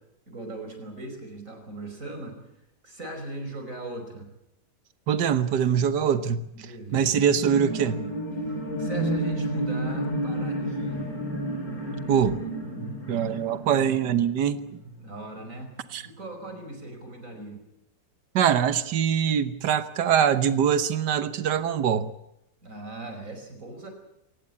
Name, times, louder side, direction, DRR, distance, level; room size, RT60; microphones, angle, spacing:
voice 1, 0.3-2.3 2.8-4.3 6.5-7.2 8.8-11.1 15.0-15.8 16.0-17.6 22.6-23.9, right 2 dB, 50° right, 6 dB, 5.6 m, -38 dB
voice 2, 5.1-6.5 6.9-8.0 12.1-12.4 13.1-14.6 15.9-16.0 18.4-22.1, right 8 dB, 85° right, 12 dB, 1.7 m, -23 dB
sound 1, 7.2-15.0 15.5-15.6, right 1 dB, 60° left, 4.8 m, -31 dB
23.5 x 19.5 x 8.8 m, 0.84 s
omnidirectional pair, 1.8 m